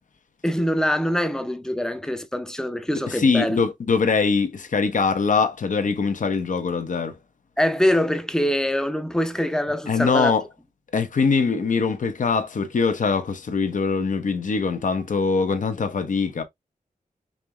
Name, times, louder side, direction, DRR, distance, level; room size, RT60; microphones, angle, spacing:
voice 1, 0.4-3.6 7.6-10.3, equal, 5° left, 0.6 m, -24 dB
voice 2, 3.1-7.2 9.9-10.4 10.9-16.4, left 5 dB, 60° left, 0.8 m, -22 dB
5.2 x 3.0 x 2.2 m
wide cardioid pair, 90°, 15 cm